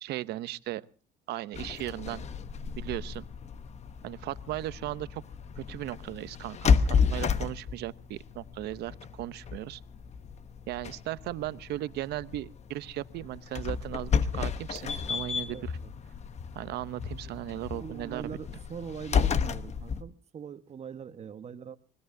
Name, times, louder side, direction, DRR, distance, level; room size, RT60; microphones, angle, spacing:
voice 1, 0.0-0.8 1.3-2.3 2.8-3.3 4.0-5.2 5.6-9.8 10.7-15.7 16.5-18.4, right 15 dB, 75° right, 16 dB, 0.7 m, -37 dB
sound 1, 1.5-20.0, left 6 dB, 40° left, 1.0 m, -32 dB
voice 2, 15.4-15.9 17.7-21.8, right 7 dB, 40° right, 11 dB, 1.2 m, -42 dB
25.5 x 20.0 x 2.7 m, 0.39 s
cardioid pair, 110°, 17 cm